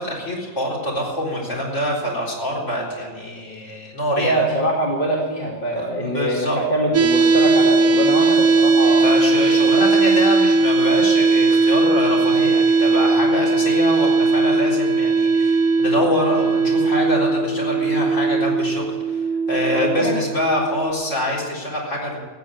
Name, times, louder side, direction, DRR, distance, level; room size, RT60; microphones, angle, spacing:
voice 1, 0.0-4.6 5.8-6.6 9.0-19.2 19.5-22.2, equal, 70° left, -4 dB, 4.3 m, -25 dB
voice 2, 4.1-9.1 9.8-9.9 19.7-20.2, right 1 dB, 45° left, -2 dB, 2.2 m, -23 dB
sound 1, 6.9-20.9, right 3 dB, 80° right, 1.2 m, -18 dB
15.0 x 8.6 x 8.8 m, 1.3 s
omnidirectional pair, 1.3 m